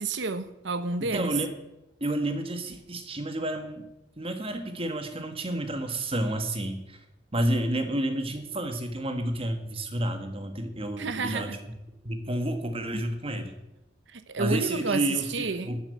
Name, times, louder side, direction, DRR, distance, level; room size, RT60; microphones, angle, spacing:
voice 1, 0.0-1.3 11.0-11.6 14.1-15.0 15.3-15.7, right 3 dB, 80° right, 0.9 m, -30 dB
voice 2, 1.0-1.5 2.0-3.9 4.2-7.0 7.3-11.5 12.0-13.6 14.4-15.8, right 1 dB, 30° right, 1.5 m, -30 dB
12.5 x 7.2 x 7.8 m
head